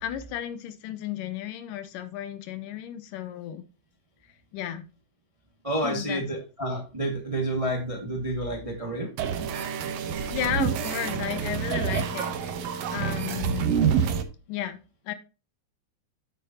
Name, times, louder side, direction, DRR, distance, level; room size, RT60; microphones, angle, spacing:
voice 1, 0.0-3.6 4.5-4.9 5.8-6.2 10.3-12.6 12.9-13.8 14.5-14.8 15.1-15.2, left 11 dB, 75° left, 11 dB, 2.2 m, -33 dB
voice 2, 5.6-9.1, right 1 dB, 35° right, 0 dB, 0.5 m, -29 dB
sound 1, 9.2-14.2, right 7 dB, 85° right, 1.4 m, -27 dB
8.9 x 7.6 x 2.8 m, 0.32 s
omnidirectional pair, 4.1 m